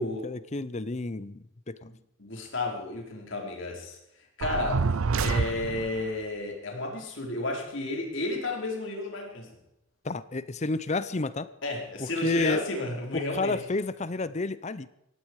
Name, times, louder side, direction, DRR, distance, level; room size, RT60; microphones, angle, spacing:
voice 1, 0.2-1.8 10.0-11.5 12.0-12.6 13.1-14.9, left 3 dB, 35° left, 16 dB, 0.7 m, -30 dB
voice 2, 1.8-4.0 4.4-9.5 11.6-13.6, left 2 dB, 60° left, 1 dB, 4.8 m, -32 dB
sound 1, 4.4-6.1, right 4 dB, 85° right, 0.6 m, -27 dB
18.0 x 15.5 x 4.8 m, 0.82 s
head